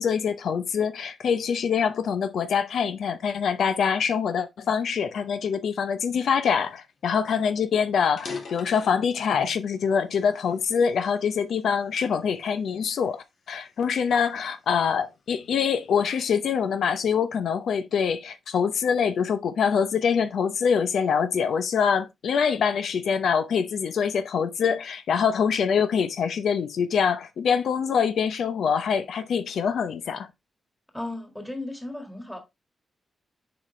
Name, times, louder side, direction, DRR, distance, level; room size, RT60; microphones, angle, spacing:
voice 1, 0.0-30.3, left 6 dB, 80° left, 0.7 m, -25 dB
sound 1, 7.0-7.1 7.4-7.5 8.0-9.6 10.2-11.4 12.0-12.3 12.9-15.0, left 4 dB, 60° left, 2.3 m, -41 dB
voice 2, 30.9-32.4, left 2 dB, 5° left, 1.7 m, -35 dB
7.1 x 5.1 x 3.1 m
wide cardioid pair, 160°, 0 cm